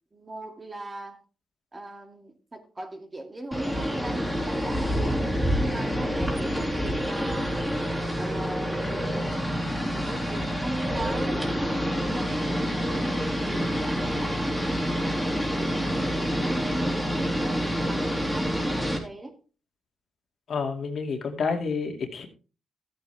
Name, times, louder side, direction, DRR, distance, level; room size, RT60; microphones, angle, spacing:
voice 1, 0.1-1.2 1.7-5.2 5.5-7.6 8.1-9.4 9.9-11.8 12.1-15.9 16.3-19.4, right 2 dB, 25° right, 2.4 m, -39 dB
sound 1, 3.5-19.0, equal, ahead, 3.7 m, -27 dB
voice 2, 20.5-22.3, left 5 dB, 60° left, 2.4 m, -29 dB
14.0 x 8.9 x 3.5 m
cardioid pair, 90°, 0 cm